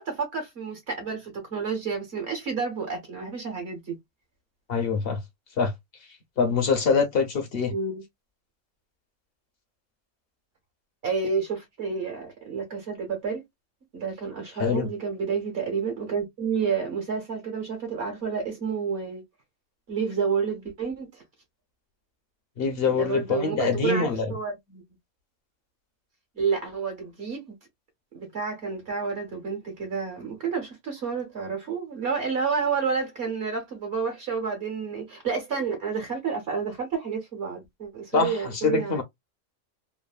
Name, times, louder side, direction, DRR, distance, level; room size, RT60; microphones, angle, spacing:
voice 1, 0.0-3.9 7.7-8.0 11.0-13.4 13.9-19.2 19.9-21.1 22.8-24.8 26.3-27.4 28.1-39.0, right 5 dB, 60° right, 1.3 m, -30 dB
voice 2, 4.7-5.2 5.6-5.7 6.4-7.7 14.6-14.9 22.6-24.3 38.1-39.0, left 5 dB, 60° left, 0.8 m, -24 dB
3.1 x 2.1 x 2.3 m
omnidirectional pair, 1.3 m